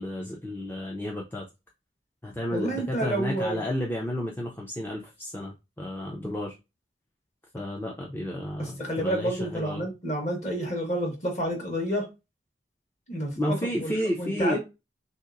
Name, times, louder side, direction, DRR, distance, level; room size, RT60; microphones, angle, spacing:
voice 1, 0.0-1.5 2.2-6.5 7.5-9.9 13.4-14.6, left 1 dB, 10° left, 0.4 m, -31 dB
voice 2, 2.5-3.6 8.6-12.1 13.1-13.9 14.2-14.6, right 1 dB, 40° left, 1.2 m, -29 dB
3.2 x 2.8 x 2.5 m
head